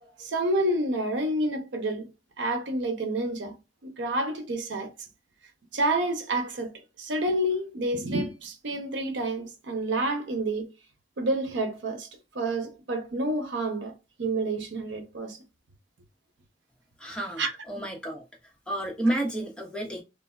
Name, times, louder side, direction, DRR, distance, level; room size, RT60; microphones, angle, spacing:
voice 1, 0.2-2.1 2.4-3.6 3.8-4.9 5.7-10.7 11.2-12.1 12.3-13.9 14.2-15.4 17.4-17.5, right 1 dB, 90° right, 0.6 m, -29 dB
voice 2, 17.0-18.2 18.7-20.0, right 1 dB, 5° left, 0.6 m, -30 dB
3.1 x 2.1 x 2.3 m
head